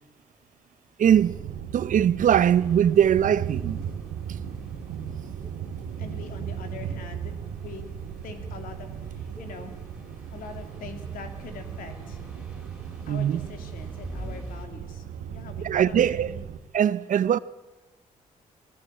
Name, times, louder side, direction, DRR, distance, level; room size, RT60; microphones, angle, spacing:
voice 1, 1.0-1.4 1.7-3.8 13.1-13.4 15.6-16.3 16.7-17.4, right 9 dB, 65° right, 0.8 m, -21 dB
sound 1, 1.0-16.6, right 8 dB, 85° right, 1.6 m, -36 dB
sound 2, 2.4-14.7, equal, ahead, 6.1 m, -47 dB
voice 2, 6.0-7.3 7.6-7.8 8.2-9.8 10.3-12.2 13.1-16.4, left 6 dB, 80° left, 3.1 m, -43 dB
20.0 x 19.5 x 8.8 m
supercardioid pair, 55°, 14 cm